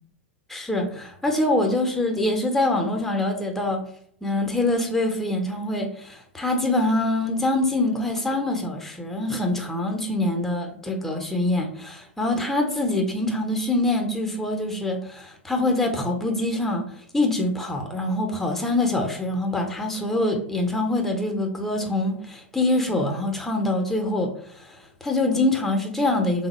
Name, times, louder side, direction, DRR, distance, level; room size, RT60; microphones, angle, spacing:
voice 1, 0.5-3.8 4.2-16.9 17.1-24.3 24.7-26.5, left 2 dB, 5° left, 3 dB, 0.6 m, -24 dB
3.5 x 2.0 x 3.0 m, 0.63 s
figure-of-eight pair, 95°, 6 cm